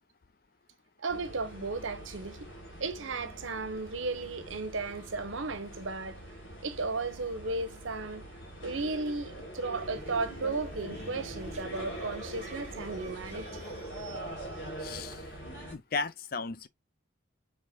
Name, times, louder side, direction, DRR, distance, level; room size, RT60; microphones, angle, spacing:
voice 1, 1.0-2.4 2.8-6.2 6.6-8.2 8.6-13.6, right 3 dB, 80° right, 1.0 m, -35 dB
sound 1, 1.1-15.7, right 1 dB, 75° left, 3.0 m, -43 dB
sound 2, 9.8-15.1, right 2 dB, 35° right, 0.7 m, -50 dB
voice 2, 14.8-15.3 15.7-16.7, left 4 dB, 45° left, 0.5 m, -35 dB
6.5 x 3.6 x 2.2 m
head